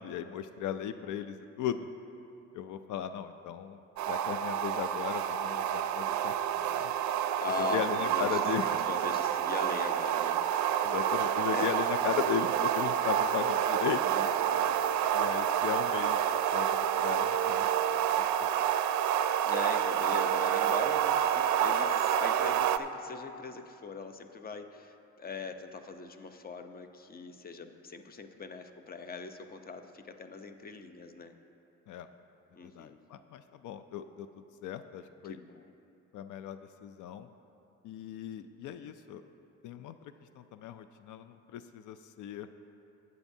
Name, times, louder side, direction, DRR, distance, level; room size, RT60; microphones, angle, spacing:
voice 1, 0.0-1.9 2.5-3.8 4.1-6.9 7.6-8.8 10.8-14.2 15.1-16.2 16.5-18.5 31.9-32.1 32.6-35.4 36.1-37.3 37.8-39.2 39.6-42.5, left 9 dB, 75° left, 10 dB, 0.5 m, -37 dB
sound 1, 4.0-22.8, right 10 dB, 70° right, 0.5 m, -28 dB
voice 2, 7.2-8.4 8.9-10.4 11.5-11.7 14.0-14.7 19.4-31.3 32.5-33.0 35.2-35.7, left 4 dB, 30° left, 7 dB, 0.7 m, -41 dB
15.0 x 9.3 x 2.7 m, 2.8 s
cardioid pair, 90°, 30 cm